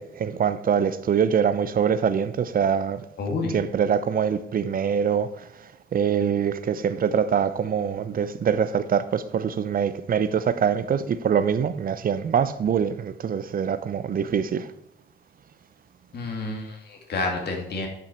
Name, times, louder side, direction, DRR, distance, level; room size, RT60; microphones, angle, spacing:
voice 1, 0.0-3.0 3.5-5.5 5.9-14.7, right 7 dB, 45° right, 0.7 m, -24 dB
voice 2, 3.2-3.5 16.1-17.9, left 3 dB, 55° left, 2.3 m, -29 dB
8.8 x 5.6 x 4.4 m
cardioid pair, 90°, 20 cm